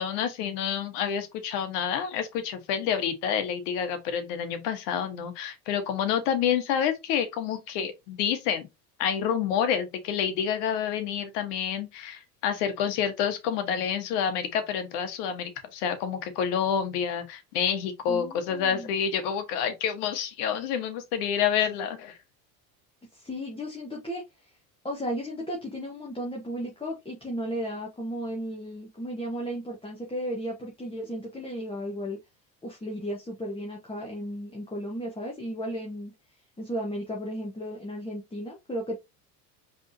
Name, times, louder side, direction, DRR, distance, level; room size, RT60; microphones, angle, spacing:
voice 1, 0.0-8.7 9.0-22.2, left 8 dB, 70° left, 1.4 m, -28 dB
voice 2, 18.1-18.9 23.1-24.5 24.8-32.2 32.6-36.1 36.6-39.0, equal, 10° left, 1.5 m, -34 dB
4.9 x 3.6 x 2.7 m
hypercardioid pair, 80°, 49 cm